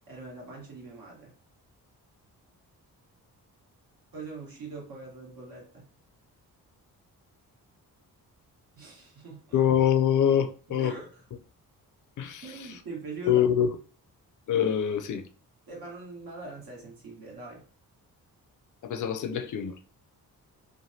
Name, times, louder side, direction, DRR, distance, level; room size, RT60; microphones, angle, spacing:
voice 1, 0.1-1.3 4.1-5.9 8.8-9.6 10.7-11.2 12.4-13.5 15.7-17.7, right 3 dB, 70° right, 1.3 m, -42 dB
voice 2, 9.5-11.0 12.2-12.4 13.2-13.7 14.5-15.2 18.8-19.7, left 9 dB, 55° left, 0.5 m, -24 dB
3.2 x 2.2 x 2.6 m
cardioid pair, 80°, 37 cm